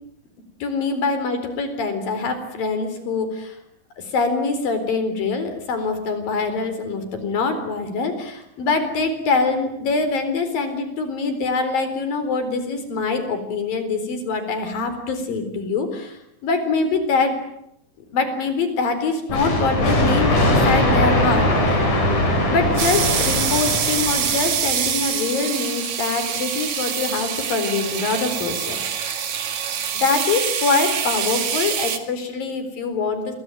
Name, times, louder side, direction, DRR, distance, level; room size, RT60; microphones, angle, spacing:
voice 1, 0.6-3.6 4.0-17.4 18.1-21.9 22.5-29.2 29.9-33.3, left 4 dB, 80° left, 9 dB, 5.8 m, -24 dB
sound 1, 19.3-24.9, left 1 dB, 65° left, 7.5 m, -20 dB
sound 2, 22.8-32.0, right 8 dB, 60° right, 3.2 m, -25 dB
27.0 x 22.5 x 9.3 m, 0.76 s
omnidirectional pair, 4.0 m